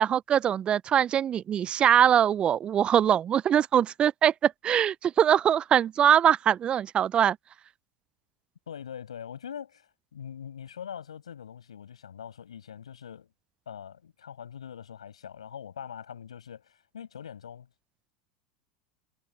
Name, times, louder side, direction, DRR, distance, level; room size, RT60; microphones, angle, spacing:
voice 1, 0.0-7.4, right 9 dB, 35° right, 0.4 m, -22 dB
voice 2, 8.7-13.3 13.7-17.7, left 8 dB, 85° left, 7.6 m, -42 dB
hypercardioid pair, 85°, 3 cm